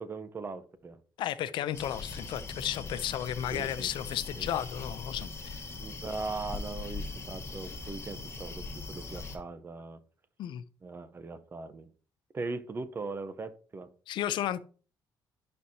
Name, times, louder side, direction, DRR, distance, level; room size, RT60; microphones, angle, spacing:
voice 1, 0.0-1.0 3.5-3.9 4.4-4.5 5.7-10.0 10.8-11.9 12.3-13.9, right 3 dB, 25° right, 0.8 m, -39 dB
voice 2, 1.2-5.7 10.4-10.6 14.1-14.6, left 11 dB, 70° left, 0.6 m, -33 dB
sound 1, 1.7-9.4, left 3 dB, 30° left, 1.3 m, -40 dB
11.0 x 4.4 x 2.8 m
cardioid pair, 130°, 8 cm